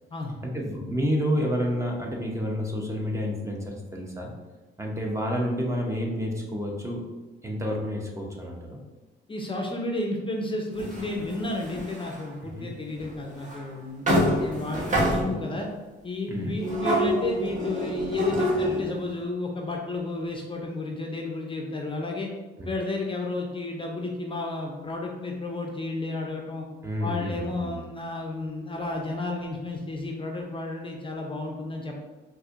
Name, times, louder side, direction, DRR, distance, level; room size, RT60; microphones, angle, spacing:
voice 1, 0.4-4.3 4.8-7.0 7.4-8.8 12.4-12.7 16.3-16.5 22.6-22.7 26.8-27.8, equal, 15° right, 0 dB, 0.7 m, -29 dB
voice 2, 9.3-15.7 16.0-22.3 22.6-26.7 27.0-32.0, left 2 dB, 25° left, 1 dB, 0.5 m, -32 dB
sound 1, 10.8-12.2 13.0-13.1 13.5-13.6 14.1-15.6 16.6-18.9, equal, 40° right, 1.1 m, -26 dB
4.2 x 2.6 x 2.5 m, 1.2 s
cardioid pair, 90°, 20 cm